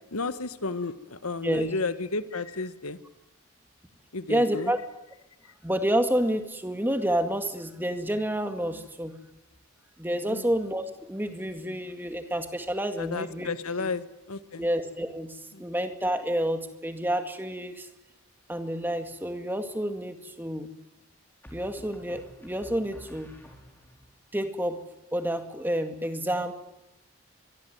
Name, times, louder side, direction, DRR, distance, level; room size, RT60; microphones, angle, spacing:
voice 1, 0.1-3.0 4.1-4.7 10.3-10.4 13.0-14.7 15.5-15.7, left 3 dB, 85° left, 13 dB, 1.4 m, -32 dB
voice 2, 4.3-4.8 5.6-9.1 10.0-13.5 13.8-13.9 14.6-17.9 18.5-20.7 21.5-23.3 24.3-24.8 25.1-26.5, right 1 dB, 10° right, 7 dB, 2.0 m, -29 dB
sound 1, 18.8-19.3 21.4-24.1, equal, 10° left, 4.7 m, -50 dB
25.0 x 22.0 x 9.3 m, 0.90 s
head